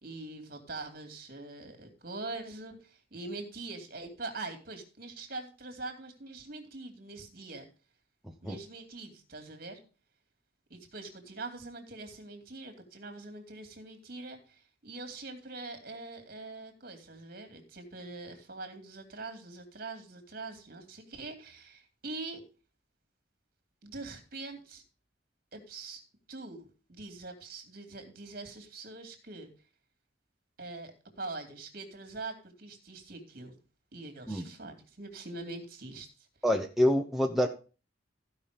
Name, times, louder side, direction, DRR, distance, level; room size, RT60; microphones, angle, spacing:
voice 1, 0.0-7.7 8.4-9.8 10.7-22.4 23.8-24.8 25.5-26.0 26.3-29.5 30.6-30.9 31.2-33.5 33.9-36.3, right 3 dB, 50° right, 5 dB, 2.6 m, -43 dB
voice 2, 36.4-37.5, left 1 dB, ahead, 2 dB, 0.8 m, -26 dB
14.5 x 5.6 x 5.1 m, 0.35 s
head